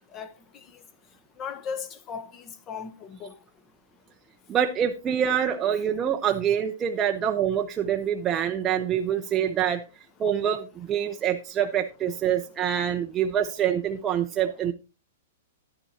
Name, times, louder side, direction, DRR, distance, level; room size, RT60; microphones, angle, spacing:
voice 1, 1.4-3.3, left 6 dB, 20° left, 0.8 m, -36 dB
voice 2, 4.5-9.8 10.2-14.7, right 9 dB, 15° right, 0.5 m, -25 dB
10.5 x 10.0 x 2.8 m
hypercardioid pair, 165°, 0 cm